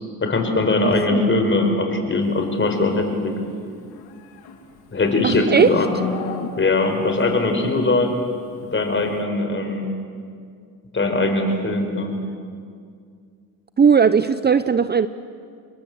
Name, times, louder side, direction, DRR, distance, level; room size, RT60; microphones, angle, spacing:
voice 1, 0.2-3.3 4.9-5.9 6.6-8.1 8.7-9.9 10.9-12.2, left 2 dB, 30° left, 4 dB, 5.2 m, -21 dB
voice 2, 0.8-1.3 5.2-5.8 13.8-15.1, right 6 dB, 25° right, 13 dB, 0.7 m, -17 dB
Livestock farm animals working animals, 3.7-7.0, left 4 dB, 85° left, 2.9 m, -32 dB
29.0 x 22.5 x 8.0 m, 2.2 s
cardioid pair, 100°, 37 cm